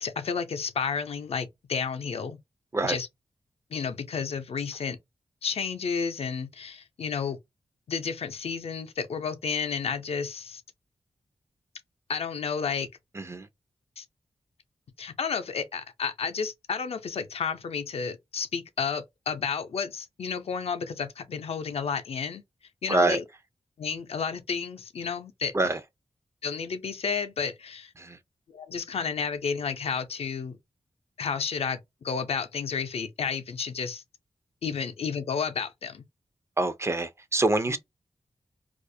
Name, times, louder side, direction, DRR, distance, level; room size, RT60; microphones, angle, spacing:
voice 1, 0.0-2.4 2.9-3.1 3.7-5.0 5.4-7.4 7.9-10.6 12.1-12.9 14.0-14.1 15.0-22.4 22.8-23.2 23.8-25.5 26.4-27.9 28.5-30.6 31.2-31.8 32.0-34.0 34.6-36.0 37.7-37.8, left 6 dB, 70° left, 0.4 m, -31 dB
voice 2, 13.1-13.5 22.9-23.2 25.5-25.8 28.0-28.2 36.6-37.8, right 2 dB, 25° right, 0.3 m, -25 dB
2.4 x 2.0 x 2.5 m
wide cardioid pair, 85°, 11 cm